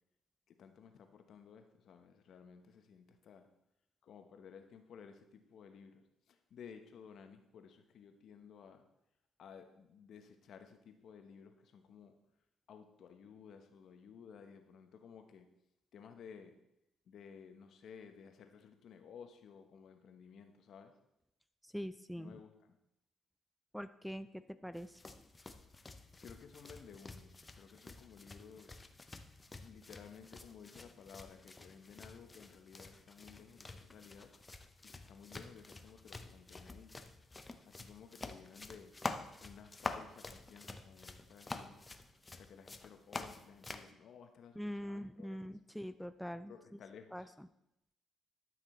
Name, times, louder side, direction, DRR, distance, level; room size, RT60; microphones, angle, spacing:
voice 1, 0.5-3.5 4.0-8.9 9.4-12.2 12.7-15.5 15.9-16.6 17.1-21.0 22.2-22.8 26.2-28.8 29.5-34.3 34.8-36.9 37.6-39.0 39.4-41.9 42.3-45.5 46.4-47.3, left 7 dB, 70° left, 7 dB, 1.0 m, -56 dB
voice 2, 21.6-22.4 23.7-25.0 44.6-46.5 47.1-47.3, equal, ahead, 11 dB, 0.4 m, -43 dB
sound 1, 24.8-43.9, left 3 dB, 20° left, 0.7 m, -48 dB
12.0 x 6.1 x 4.4 m, 0.84 s
cardioid pair, 90°, 0 cm